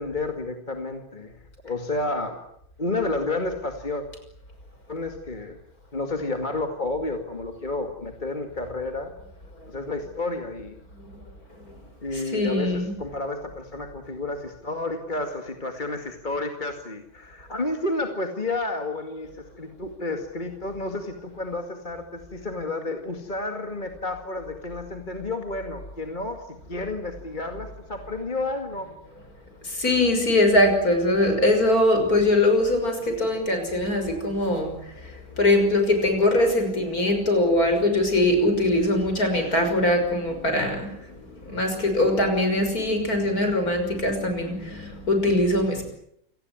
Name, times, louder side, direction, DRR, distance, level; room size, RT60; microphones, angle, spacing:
voice 1, 0.0-2.4 2.8-4.0 4.9-5.6 5.9-9.1 9.7-10.8 12.0-28.9, left 2 dB, 25° left, 5 dB, 2.3 m, -31 dB
voice 2, 12.1-12.9 29.6-34.7 35.4-40.9 41.4-45.8, left 1 dB, 45° left, 6 dB, 6.4 m, -22 dB
28.5 x 18.5 x 9.6 m, 0.73 s
omnidirectional pair, 2.2 m